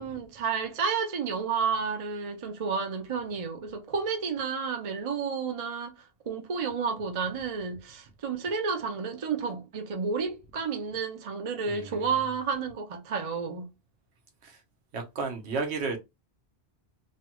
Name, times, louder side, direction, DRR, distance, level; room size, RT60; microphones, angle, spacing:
voice 1, 0.0-5.9 6.3-13.7, right 5 dB, 40° right, 0.5 m, -31 dB
voice 2, 14.9-16.0, right 4 dB, 80° right, 1.2 m, -32 dB
3.2 x 2.2 x 2.9 m
omnidirectional pair, 1.1 m